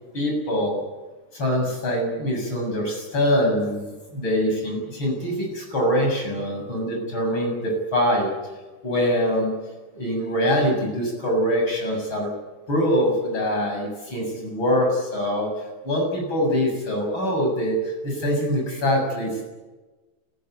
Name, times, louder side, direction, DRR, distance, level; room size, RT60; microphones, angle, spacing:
voice 1, 0.1-0.8 1.3-8.3 8.8-9.5 9.9-12.3 12.7-15.5 15.8-19.4, equal, 65° left, 1 dB, 8.3 m, -24 dB
28.5 x 15.0 x 9.6 m, 1.2 s
omnidirectional pair, 2.4 m